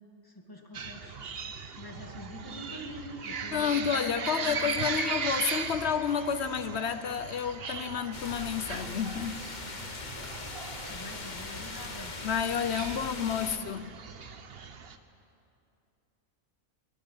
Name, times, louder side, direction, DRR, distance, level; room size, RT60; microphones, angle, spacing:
voice 1, 0.2-1.2 1.8-5.0 10.9-12.2 12.7-13.8, left 1 dB, 15° left, 2.0 m, -45 dB
sound 1, 0.7-15.0, right 6 dB, 50° right, 1.1 m, -38 dB
voice 2, 3.5-9.4 12.2-13.9, left 7 dB, 60° left, 0.8 m, -30 dB
sound 2, 8.1-13.6, left 4 dB, 35° left, 1.0 m, -40 dB
22.5 x 21.0 x 5.6 m
omnidirectional pair, 1.4 m